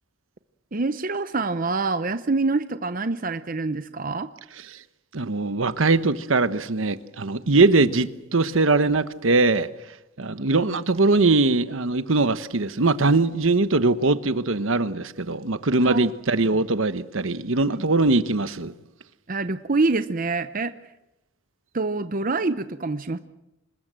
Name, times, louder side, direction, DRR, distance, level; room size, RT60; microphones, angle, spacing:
voice 1, 0.7-4.3 15.8-16.1 17.7-17.8 19.3-20.7 21.7-23.2, right 3 dB, 40° right, 0.8 m, -26 dB
voice 2, 5.1-18.7, right 3 dB, 70° right, 1.1 m, -21 dB
26.5 x 20.5 x 7.6 m
head